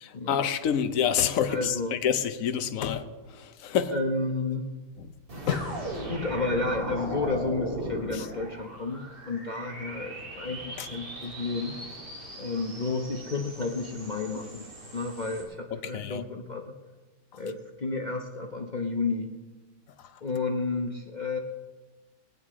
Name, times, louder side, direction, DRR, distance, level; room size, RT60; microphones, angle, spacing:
voice 1, 0.0-1.7 2.0-3.0 3.4-4.0 5.5-5.7 10.8-10.9 15.9-16.2, left 8 dB, 60° left, 1.1 m, -27 dB
voice 2, 1.5-2.0 3.9-4.7 6.0-11.8 12.4-14.7 14.9-16.7 17.4-19.4 20.2-21.4, left 3 dB, 40° left, 0.7 m, -31 dB
sound 1, 5.3-15.4, right 1 dB, 85° right, 3.5 m, -38 dB
20.5 x 9.4 x 3.7 m
omnidirectional pair, 1.8 m